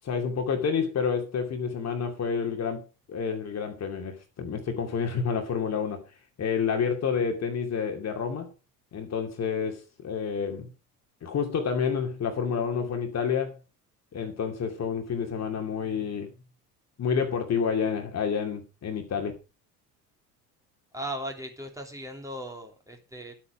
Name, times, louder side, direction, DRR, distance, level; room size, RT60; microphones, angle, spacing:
voice 1, 0.0-6.0 6.4-8.5 8.9-10.7 11.2-13.6 14.1-16.3 17.0-19.4, left 6 dB, 35° left, 2.5 m, -29 dB
voice 2, 20.9-23.4, right 1 dB, 5° right, 3.1 m, -37 dB
12.0 x 8.6 x 4.9 m
figure-of-eight pair, 65°, 47 cm